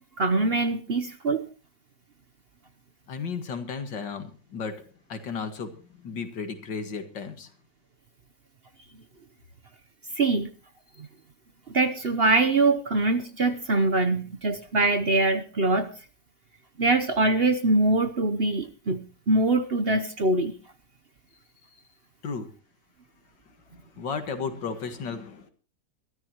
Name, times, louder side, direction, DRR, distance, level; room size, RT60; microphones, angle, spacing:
voice 1, 0.2-1.5 10.2-10.5 11.7-15.9 16.8-20.5, right 2 dB, 45° right, 8 dB, 0.9 m, -23 dB
voice 2, 3.1-7.5 10.9-11.0 21.7-21.8 22.2-22.5 24.0-25.5, left 5 dB, 90° left, 8 dB, 2.4 m, -34 dB
22.0 x 13.5 x 3.0 m, 0.35 s
omnidirectional pair, 1.9 m